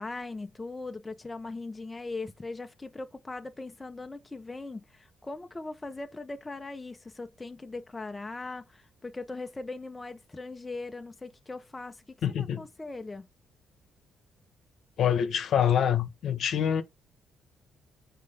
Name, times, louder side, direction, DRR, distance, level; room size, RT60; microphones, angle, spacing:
voice 1, 0.0-13.3, left 3 dB, 20° left, 1.3 m, -40 dB
voice 2, 12.2-12.6 15.0-16.8, left 9 dB, 70° left, 1.3 m, -25 dB
6.7 x 4.9 x 3.6 m
cardioid pair, 90°, 0 cm